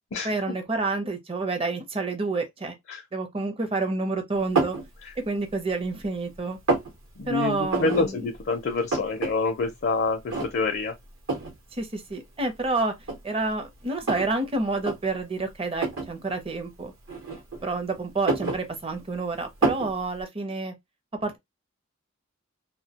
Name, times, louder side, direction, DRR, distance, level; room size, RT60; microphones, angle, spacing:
voice 1, 0.2-2.7 3.1-4.8 5.2-6.6 7.3-8.3 11.7-12.9 13.2-16.9 17.6-20.7 21.2-21.4, right 3 dB, 25° right, 0.6 m, -29 dB
sound 1, 4.6-4.9 5.4-6.1 6.3-6.9 7.7-8.1 8.4-8.5 8.7-9.3 9.7-9.8 10.3-10.8 11.3-11.6 12.4-12.5 13.0-14.3 14.7-15.0 15.8-16.1 17.1-17.7 18.1-19.1 19.6-19.9, right 3 dB, 65° right, 0.9 m, -27 dB
voice 2, 7.2-10.9, left 3 dB, 55° left, 0.5 m, -27 dB
2.2 x 2.1 x 2.7 m
head